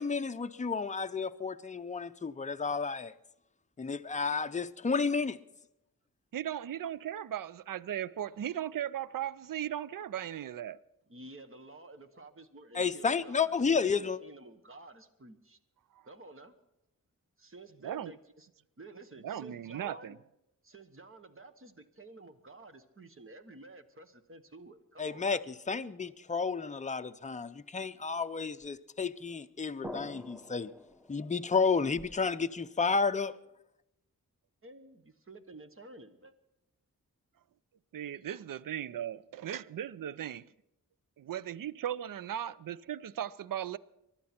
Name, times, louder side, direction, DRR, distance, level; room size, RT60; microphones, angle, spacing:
voice 1, 0.0-3.1 3.8-5.4 12.7-14.2 25.0-30.7 31.1-33.3, left 5 dB, 20° left, 0.5 m, -31 dB
voice 2, 6.3-10.8 17.8-18.1 19.2-20.2 37.9-40.5 41.2-43.8, right 10 dB, 75° right, 0.5 m, -37 dB
voice 3, 11.1-15.6 16.0-16.5 17.4-18.5 18.8-20.2 20.6-25.4 34.6-36.3, right 2 dB, 40° right, 1.2 m, -51 dB
sound 1, 28.6-28.7 29.8-32.2, equal, ahead, 0.9 m, -47 dB
24.0 x 11.5 x 4.4 m
wide cardioid pair, 90°, 34 cm